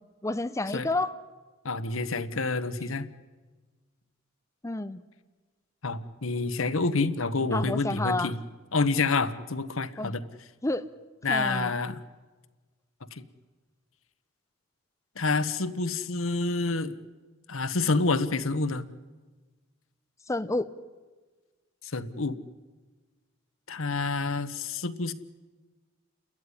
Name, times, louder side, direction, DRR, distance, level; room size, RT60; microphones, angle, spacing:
voice 1, 0.2-1.1 4.6-5.0 7.5-8.3 10.0-10.1 10.6-10.9 11.3-11.8 20.3-20.7, left 2 dB, 15° left, 11 dB, 0.7 m, -29 dB
voice 2, 1.6-3.1 5.8-8.4 8.7-10.2 11.2-12.0 13.1-13.2 15.2-16.9 17.5-18.9 21.8-22.4 23.7-25.1, left 3 dB, 85° left, 12 dB, 1.2 m, -28 dB
29.5 x 13.5 x 9.9 m, 1.3 s
head